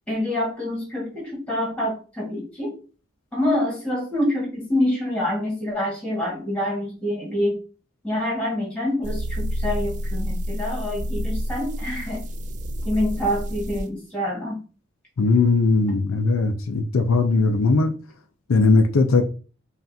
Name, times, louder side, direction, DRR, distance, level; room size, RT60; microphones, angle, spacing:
voice 1, 0.1-2.7 3.3-7.6 8.0-12.2 12.8-14.6, left 1 dB, 5° left, 1.6 m, -26 dB
sound 1, 9.0-13.8, equal, 35° right, 0.3 m, -29 dB
voice 2, 15.2-17.9 18.5-19.2, left 3 dB, 80° left, 0.5 m, -19 dB
5.5 x 2.4 x 2.7 m
head